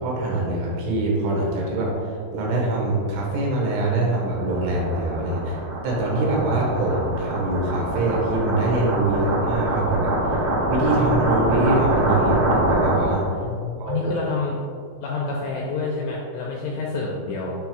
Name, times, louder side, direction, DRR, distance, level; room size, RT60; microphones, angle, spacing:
voice 1, 0.0-5.6 5.8-10.3 10.7-13.3 13.8-14.1, right 2 dB, 80° right, -2 dB, 3.8 m, -24 dB
sound 1, 3.3-13.3, right 1 dB, 65° right, 3.7 m, -24 dB
voice 2, 13.4-14.6 15.0-17.6, left 3 dB, 85° left, -3 dB, 2.5 m, -28 dB
8.5 x 6.0 x 2.3 m, 2.2 s
omnidirectional pair, 5.6 m